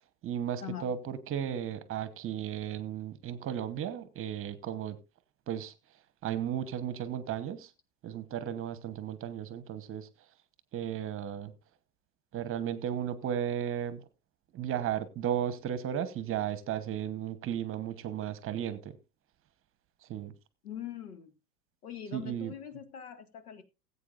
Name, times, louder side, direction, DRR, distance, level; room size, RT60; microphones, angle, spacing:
voice 1, 0.2-5.0 5.5-5.7 6.2-7.7 8.0-10.1 10.7-11.5 12.3-14.0 14.5-19.0 20.1-20.3 22.1-22.5, right 10 dB, 30° right, 1.1 m, -34 dB
voice 2, 20.6-21.3 21.8-23.6, left 9 dB, 70° left, 1.9 m, -42 dB
19.5 x 8.4 x 2.5 m
hypercardioid pair, 100°, 46 cm